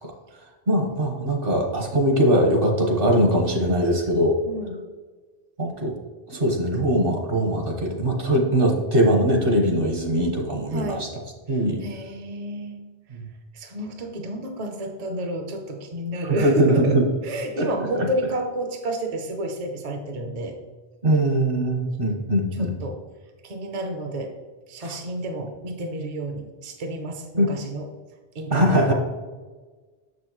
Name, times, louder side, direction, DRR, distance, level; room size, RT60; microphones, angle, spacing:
voice 1, 0.7-4.4 5.6-5.9 6.3-11.1 11.5-11.8 13.2-13.3 16.2-17.0 17.6-17.7 18.0-18.1 21.0-22.8 24.8-25.0 27.4-27.5 28.5-28.9, right 1 dB, 60° right, 2 dB, 1.4 m, -21 dB
voice 2, 4.5-4.8 10.7-11.0 11.8-12.8 13.5-17.0 17.2-20.5 22.6-23.0 23.4-24.3 24.7-27.9 28.3-28.9, right 1 dB, 45° right, 4 dB, 0.7 m, -31 dB
6.7 x 6.3 x 3.0 m, 1.4 s
omnidirectional pair, 1.1 m